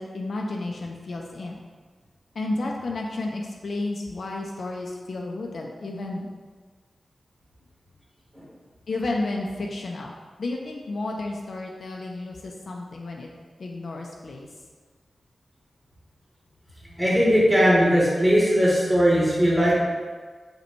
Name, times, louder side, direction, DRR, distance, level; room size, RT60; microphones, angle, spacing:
voice 1, 0.0-1.6 2.4-6.3 8.9-10.1 10.4-13.3 13.6-14.5, left 2 dB, 65° left, 0 dB, 0.4 m, -32 dB
voice 2, 17.0-19.8, equal, 10° right, -7 dB, 1.1 m, -19 dB
4.9 x 2.2 x 3.0 m, 1.5 s
wide cardioid pair, 135°, 0 cm